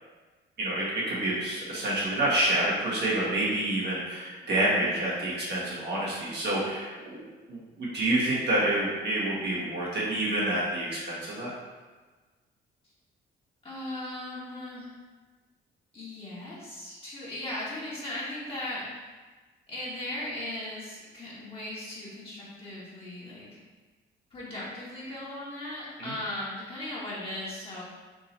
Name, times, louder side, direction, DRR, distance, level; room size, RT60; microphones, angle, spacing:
voice 1, 0.6-11.5 26.0-26.1, right 1 dB, 60° right, -7 dB, 1.4 m, -28 dB
voice 2, 13.6-14.9 15.9-19.0 19.7-23.6 24.3-27.8, left 1 dB, 30° left, -9 dB, 1.3 m, -37 dB
3.7 x 2.7 x 4.2 m, 1.3 s
cardioid pair, 90°, 20 cm